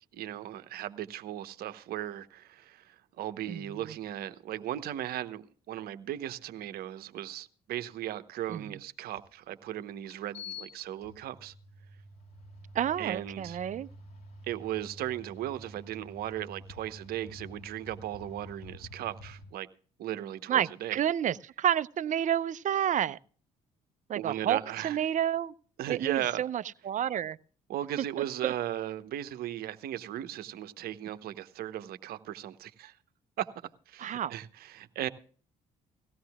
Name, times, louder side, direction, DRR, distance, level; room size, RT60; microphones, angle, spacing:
voice 1, 0.1-11.5 13.0-13.6 14.4-19.7 20.0-21.0 24.1-25.0 25.8-26.4 27.7-33.0 33.4-33.5 33.9-35.1, right 12 dB, 65° right, 0.9 m, -37 dB
voice 2, 3.5-3.9 8.5-8.8 12.7-13.9 20.5-23.2 24.1-24.6 24.8-25.5 25.9-27.4 28.4-28.5 34.0-34.3, right 10 dB, 50° right, 0.6 m, -30 dB
sound 1, 9.1-9.2 10.0-19.4, left 2 dB, 65° left, 6.2 m, -48 dB
18.5 x 16.0 x 2.3 m
hypercardioid pair, 55°, 17 cm